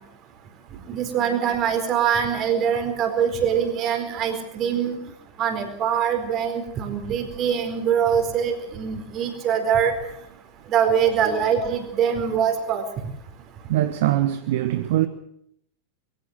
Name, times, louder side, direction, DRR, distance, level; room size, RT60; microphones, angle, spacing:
voice 1, 0.9-5.0 5.4-9.9 10.7-12.8, right 8 dB, 35° right, 4.5 m, -23 dB
voice 2, 13.7-15.1, right 14 dB, 55° right, 1.1 m, -22 dB
22.5 x 16.0 x 8.1 m
figure-of-eight pair, 90°, 0 cm